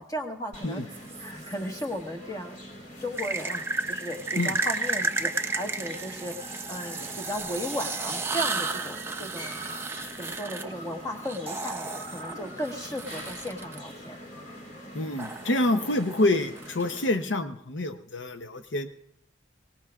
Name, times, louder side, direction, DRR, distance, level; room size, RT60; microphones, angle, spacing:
voice 1, 0.0-2.6 3.0-6.3 6.7-9.6 10.2-14.2, equal, 20° left, 3 dB, 1.4 m, -35 dB
sound 1, 0.5-17.2, equal, 40° left, 2.0 m, -44 dB
sound 2, 0.9-1.8 3.1-13.8 15.2-17.0, right 3 dB, 15° right, 0.5 m, -33 dB
voice 2, 14.9-18.9, left 2 dB, 80° left, 8 dB, 0.8 m, -27 dB
23.5 x 18.5 x 2.4 m, 0.71 s
head